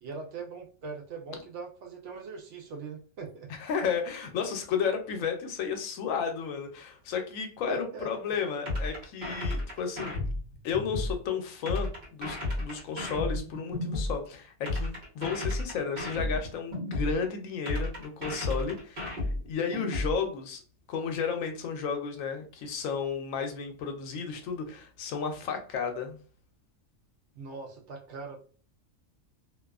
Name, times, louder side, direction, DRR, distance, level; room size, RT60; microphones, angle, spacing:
voice 1, 0.0-3.5 7.7-8.1 27.3-28.4, right 4 dB, 70° right, 1 dB, 0.9 m, -41 dB
voice 2, 3.5-10.2 10.6-20.6 20.9-26.2, left 6 dB, 80° left, 5 dB, 0.9 m, -33 dB
sound 1, 8.7-11.1 11.7-14.1 14.7-17.1 17.7-20.1, left 2 dB, 45° right, 1.2 m, -32 dB
2.5 x 2.3 x 2.3 m, 0.42 s
omnidirectional pair, 1.4 m